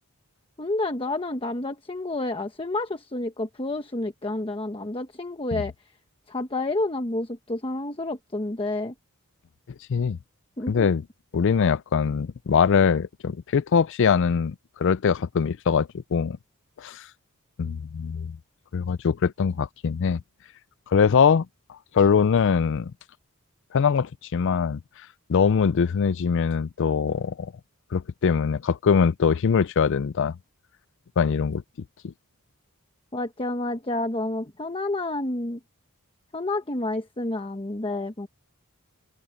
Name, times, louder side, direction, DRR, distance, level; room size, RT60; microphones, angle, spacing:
voice 1, 0.6-5.7 6.3-8.9 10.6-10.9 33.1-35.6 36.3-38.3, left 2 dB, 25° left, 1.1 m, -29 dB
voice 2, 10.7-11.0 11.3-14.5 14.8-16.4 16.8-17.0 17.6-18.4 18.7-20.2 20.9-21.5 21.9-22.9 23.7-24.8 25.3-27.5 27.9-30.3 31.2-31.6 32.0-32.1, left 6 dB, 55° left, 0.4 m, -22 dB
open air
head